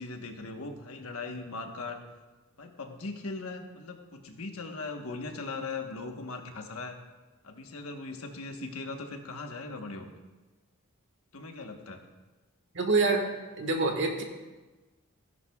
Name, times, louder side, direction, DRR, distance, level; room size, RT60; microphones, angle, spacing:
voice 1, 0.0-2.0 2.6-7.0 7.4-10.1 11.3-12.0, left 3 dB, 75° left, 4 dB, 1.2 m, -39 dB
voice 2, 12.7-13.3 13.6-14.2, right 3 dB, 60° right, 3 dB, 1.5 m, -26 dB
16.0 x 10.5 x 2.3 m, 1.2 s
head